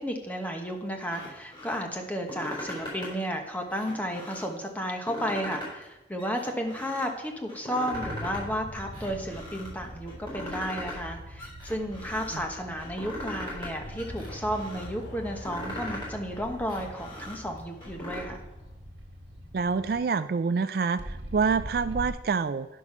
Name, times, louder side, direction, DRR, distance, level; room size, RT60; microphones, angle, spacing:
voice 1, 0.0-18.4, equal, 10° left, 3 dB, 1.1 m, -33 dB
sound 1, 1.0-1.8 2.1-3.2 3.6-4.5 4.9-5.9 6.2-7.1 7.5-8.4 8.7-9.7 10.1-11.1 11.4-12.4 12.8-13.7 14.0-14.9 15.2-16.1 16.5-18.2, left 1 dB, 30° left, 3.8 m, -39 dB
sound 2, 7.9-20.0 21.0-22.1, equal, 75° right, 1.8 m, -43 dB
sound 3, 13.8-18.7, left 1 dB, 90° left, 1.8 m, -45 dB
voice 2, 19.5-22.7, right 5 dB, 55° right, 13 dB, 0.3 m, -27 dB
10.0 x 6.2 x 6.0 m, 0.99 s
head